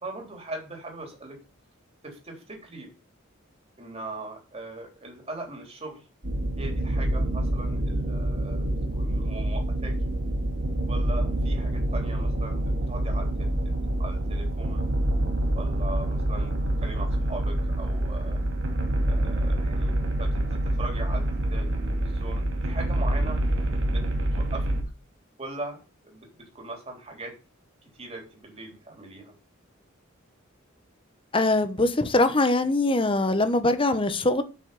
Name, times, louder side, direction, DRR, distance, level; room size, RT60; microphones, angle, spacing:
voice 1, 0.0-1.4 2.0-2.9 3.8-6.0 6.6-10.1 10.9-13.7 14.0-14.9 15.6-18.4 19.0-20.5 20.8-23.4 23.9-24.0 24.3-24.7 25.4-27.4 28.0-29.3, right 2 dB, 30° right, 3.6 m, -40 dB
sound 1, 6.2-24.8, right 1 dB, 65° right, 2.4 m, -26 dB
voice 2, 31.3-34.4, left 2 dB, 25° left, 1.0 m, -22 dB
8.8 x 6.1 x 7.0 m
head